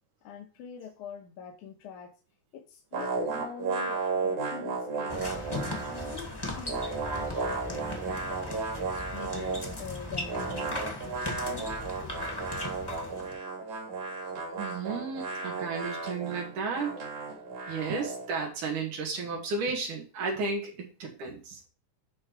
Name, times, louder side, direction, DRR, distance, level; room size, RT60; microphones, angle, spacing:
voice 1, 0.2-2.1 2.5-8.4 8.8-11.2 11.4-11.7 12.0-12.2, left 7 dB, 80° left, 2 dB, 2.6 m, -45 dB
sound 1, 2.9-6.2 6.5-9.8 10.3-18.3, right 4 dB, 70° right, 3.7 m, -34 dB
sound 2, 5.1-13.4, left 2 dB, 15° left, 0.9 m, -38 dB
voice 2, 14.6-17.0 17.7-21.6, right 4 dB, 90° right, 0 dB, 3.6 m, -33 dB
10.5 x 3.9 x 4.7 m, 0.34 s
omnidirectional pair, 3.5 m